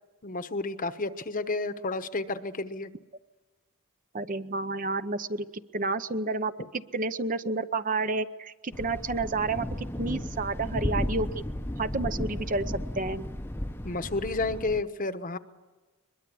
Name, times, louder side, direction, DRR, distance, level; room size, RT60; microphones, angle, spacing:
voice 1, 0.2-2.9 13.8-15.4, left 3 dB, 40° left, 10 dB, 1.1 m, -31 dB
voice 2, 4.1-5.5 5.7-11.4 11.8-12.7 13.0-13.2, right 3 dB, 35° right, 11 dB, 0.8 m, -30 dB
Thunder, 8.7-14.8, left 1 dB, 10° left, 0.8 m, -34 dB
22.5 x 22.5 x 8.5 m, 1.2 s
head